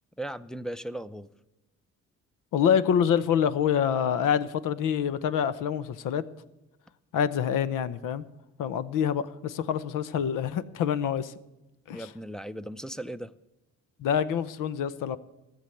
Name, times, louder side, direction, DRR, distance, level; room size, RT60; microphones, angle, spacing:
voice 1, 0.2-1.3 11.9-13.3, right 1 dB, ahead, 10 dB, 0.5 m, -37 dB
voice 2, 2.5-6.2 7.1-8.2 8.6-11.3 11.9-12.1 14.0-15.2, left 8 dB, 80° left, 14 dB, 0.9 m, -26 dB
15.0 x 7.0 x 9.1 m, 0.98 s
cardioid pair, 95°, 31 cm